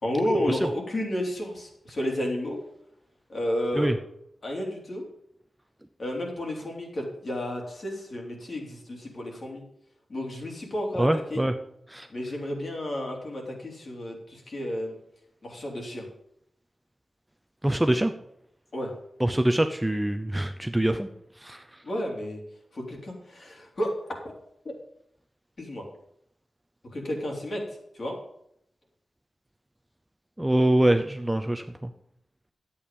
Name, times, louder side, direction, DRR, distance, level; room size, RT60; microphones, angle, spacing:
voice 1, 0.0-2.6 3.3-3.9 4.4-5.0 6.0-9.6 10.1-11.4 12.1-14.9 15.4-16.0 18.7-18.9 21.8-22.4 22.7-23.9 24.6-24.7 25.6-25.8 26.9-27.6 27.9-28.1, left 1 dB, 45° left, 0 dB, 3.1 m, -31 dB
voice 2, 11.0-11.5 11.9-12.1 17.6-18.1 19.2-21.1 21.4-21.8 30.4-31.9, right 1 dB, 10° right, 7 dB, 0.6 m, -24 dB
11.5 x 8.6 x 5.3 m, 0.73 s
wide cardioid pair, 150°, 0 cm